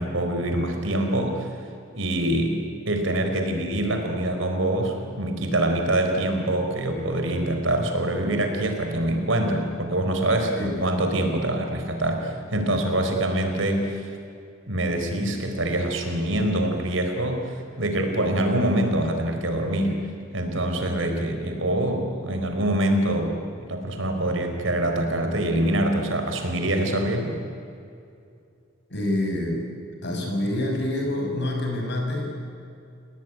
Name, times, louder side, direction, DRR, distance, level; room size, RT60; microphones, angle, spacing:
voice 1, 0.0-1.5 1.9-2.6 2.9-14.1 14.7-20.0 20.3-23.3 23.6-27.4, right 1 dB, 75° right, 4 dB, 4.4 m, -25 dB
voice 2, 28.9-29.7 30.0-32.5, left 1 dB, 60° left, 2 dB, 6.8 m, -27 dB
29.5 x 19.0 x 9.6 m, 2.5 s
head